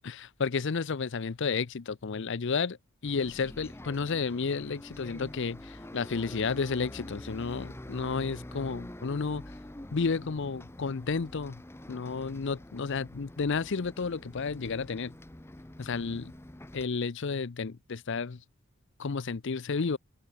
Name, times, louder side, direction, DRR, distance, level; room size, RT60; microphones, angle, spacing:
voice 1, 0.0-2.8 3.0-9.4 9.9-11.6 11.9-15.1 15.8-16.3 16.7-18.4 19.0-20.0, left 5 dB, 55° left, 0.6 m, -32 dB
Bus, 3.0-16.8, left 1 dB, 10° left, 0.8 m, -46 dB
head